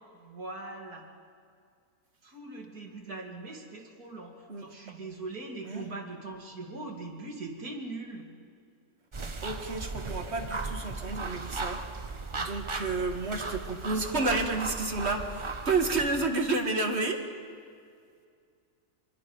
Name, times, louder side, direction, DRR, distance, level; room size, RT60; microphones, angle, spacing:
voice 1, 0.1-1.1 2.2-8.3, right 2 dB, 90° right, 1 dB, 3.0 m, -41 dB
sound 1, 9.1-16.3, right 3 dB, 25° right, 0.7 m, -37 dB
voice 2, 9.4-17.3, right 3 dB, 45° right, 4 dB, 1.9 m, -31 dB
26.5 x 22.5 x 5.4 m, 2.2 s
omnidirectional pair, 1.6 m